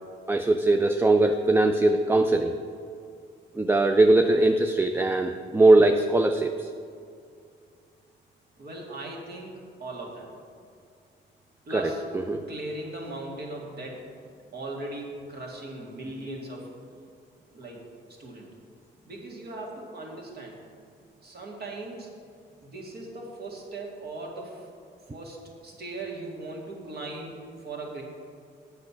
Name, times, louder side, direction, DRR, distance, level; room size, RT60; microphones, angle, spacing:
voice 1, 0.3-2.5 3.6-6.7 11.7-12.4, right 2 dB, 10° right, 6 dB, 0.4 m, -21 dB
voice 2, 8.6-9.5 9.8-10.3 11.7-12.0 12.5-14.0 14.5-16.7 17.5-17.8 18.2-18.5 19.1-20.6 21.2-22.1 22.6-24.7 25.1-28.0, right 2 dB, 50° right, -1 dB, 2.0 m, -38 dB
8.0 x 6.7 x 5.7 m, 2.3 s
cardioid pair, 90°, 20 cm